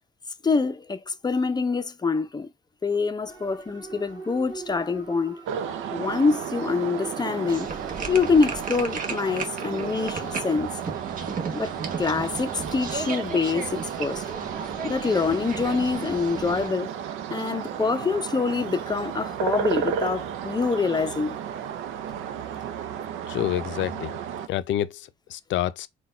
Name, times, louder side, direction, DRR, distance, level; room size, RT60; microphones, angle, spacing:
voice 1, 0.4-2.5 2.8-5.3 5.9-7.7 8.1-10.8 11.5-14.2 14.8-16.9 17.2-21.3, left 4 dB, 20° left, 0.5 m, -25 dB
sound 1, 3.3-10.1, right 4 dB, 20° right, 1.8 m, -42 dB
sound 2, 5.5-24.5, right 8 dB, 90° right, 0.5 m, -33 dB
sound 3, 7.5-16.7, right 4 dB, 45° right, 0.9 m, -35 dB
voice 2, 23.3-24.1 24.5-25.9, left 12 dB, 70° left, 0.5 m, -28 dB
3.9 x 2.3 x 4.2 m
cardioid pair, 90°, 20 cm